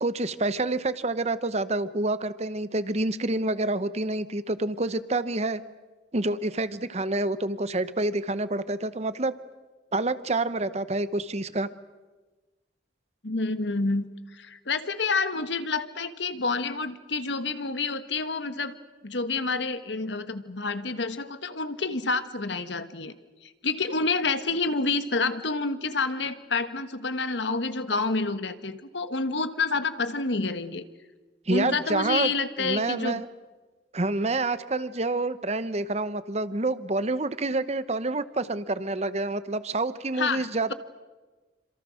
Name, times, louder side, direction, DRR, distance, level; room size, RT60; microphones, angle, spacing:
voice 1, 0.0-5.6 6.1-9.3 9.9-11.7 31.5-32.3 32.6-33.3 33.9-40.7, right 2 dB, 35° right, 14 dB, 0.9 m, -28 dB
voice 2, 13.2-14.0 14.3-18.7 19.0-23.1 23.4-30.8 31.5-33.2 40.2-40.7, left 3 dB, 75° left, 11 dB, 1.4 m, -28 dB
27.5 x 26.5 x 6.4 m, 1.3 s
head